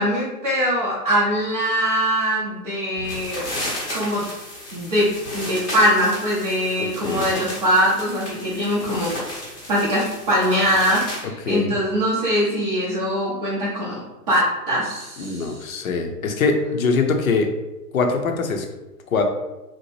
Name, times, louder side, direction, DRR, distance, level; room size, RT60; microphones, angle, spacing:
voice 1, 0.0-3.5 3.9-4.3 4.7-5.1 5.3-9.1 9.7-14.0 14.3-15.5, equal, 30° right, -8 dB, 0.5 m, -22 dB
sound 1, 3.0-11.2, left 1 dB, 15° left, 0.7 m, -33 dB
voice 2, 6.8-7.3 11.4-11.8 15.2-17.5 17.9-18.7 19.1-19.2, left 4 dB, 60° left, 4 dB, 0.6 m, -22 dB
2.7 x 2.1 x 2.9 m, 1.0 s
figure-of-eight pair, 120°, 49 cm